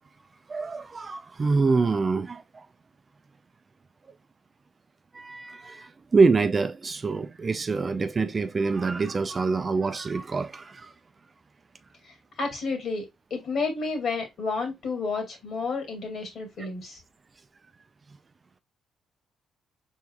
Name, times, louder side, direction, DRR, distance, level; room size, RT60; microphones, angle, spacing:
voice 1, 0.5-2.7 5.1-10.9 16.6-16.7, right 4 dB, 35° right, 0.4 m, -25 dB
voice 2, 12.4-17.0, left 4 dB, 60° left, 2.0 m, -31 dB
4.6 x 3.6 x 2.3 m
cardioid pair, 90°, 0 cm